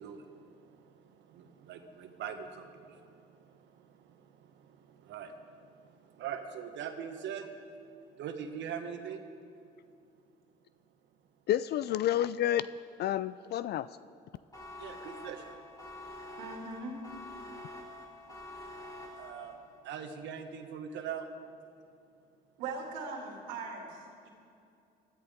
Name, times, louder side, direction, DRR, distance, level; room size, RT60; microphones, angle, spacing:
voice 1, 0.0-7.5 8.2-9.2 14.8-15.4 19.2-19.5 19.8-21.3, right 8 dB, 70° right, 1.4 m, -43 dB
voice 2, 11.5-12.7 13.0-13.9, left 12 dB, 60° left, 0.4 m, -29 dB
sound 1, 14.5-19.8, left 1 dB, 20° left, 3.7 m, -47 dB
voice 3, 16.4-17.0 22.6-24.3, right 3 dB, 90° right, 2.6 m, -40 dB
20.5 x 13.5 x 3.7 m
supercardioid pair, 70°, 19 cm